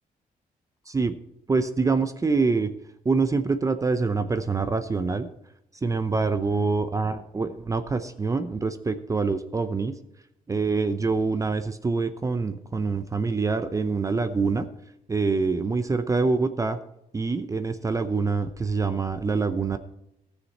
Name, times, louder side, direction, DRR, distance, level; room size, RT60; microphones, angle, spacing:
voice 1, 1.5-2.7 3.0-5.3 5.8-9.9 10.5-14.7 15.1-16.8 17.1-19.8, right 4 dB, 20° right, 10 dB, 0.6 m, -25 dB
17.5 x 6.6 x 4.2 m, 0.80 s
wide cardioid pair, 150°, 15 cm